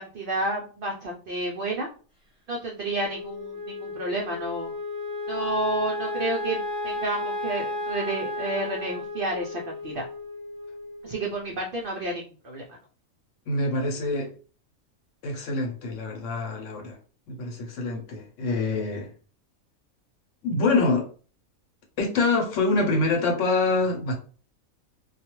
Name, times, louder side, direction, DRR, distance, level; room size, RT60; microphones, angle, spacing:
voice 1, 0.0-1.9 2.5-4.7 5.3-10.1 11.0-12.6, right 2 dB, 85° right, 0.4 m, -30 dB
Wind instrument woodwind instrument, 2.9-11.4, left 2 dB, 5° right, 0.6 m, -33 dB
voice 2, 13.5-14.3 15.2-17.0 17.3-19.1 20.4-21.1 22.0-24.2, left 3 dB, 65° left, 1.0 m, -25 dB
2.3 x 2.2 x 2.9 m
omnidirectional pair, 1.5 m